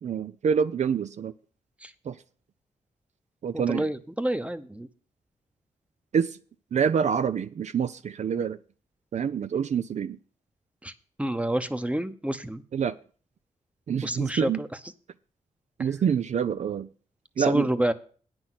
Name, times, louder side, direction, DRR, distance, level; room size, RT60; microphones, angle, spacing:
voice 1, 0.0-1.3 2.1-2.2 3.4-3.9 6.1-6.4 6.7-8.6 9.1-10.2 12.7-12.9 13.9-14.6 15.8-16.9 17.4-17.7, right 7 dB, 60° right, 0.5 m, -26 dB
voice 2, 3.5-4.9 10.8-10.9 11.2-12.6 14.0-14.7 17.4-17.9, right 1 dB, 10° right, 0.9 m, -28 dB
8.9 x 6.1 x 7.6 m
cardioid pair, 55°, 13 cm